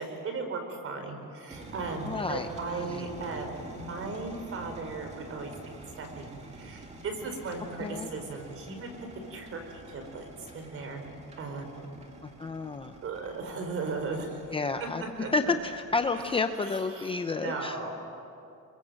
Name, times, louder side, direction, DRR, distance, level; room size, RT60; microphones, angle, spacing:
voice 1, 0.0-5.5 6.0-9.6 9.9-11.8 13.0-14.4 14.8-15.3 16.1-16.3 16.9-17.1 17.3-17.9, right 3 dB, 40° right, 5 dB, 4.5 m, -37 dB
sound 1, 1.5-16.4, right 2 dB, 20° right, 2.4 m, -47 dB
voice 2, 2.1-3.1 7.8-8.1 12.2-12.9 14.5-15.0 15.3-17.9, left 4 dB, 15° left, 7 dB, 0.6 m, -31 dB
29.0 x 22.5 x 7.7 m, 2.6 s
cardioid pair, 170°, 33 cm